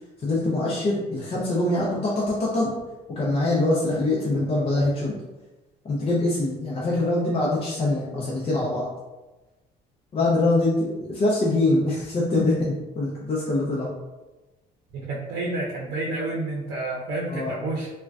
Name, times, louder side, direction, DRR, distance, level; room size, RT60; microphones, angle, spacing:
voice 1, 0.2-2.7 3.1-5.2 5.8-8.9 10.1-13.9 17.3-17.6, left 2 dB, 35° left, -5 dB, 0.6 m, -24 dB
voice 2, 14.9-17.9, right 2 dB, 70° right, -3 dB, 0.6 m, -29 dB
3.6 x 2.2 x 2.3 m, 1.1 s
cardioid pair, 110°, 17 cm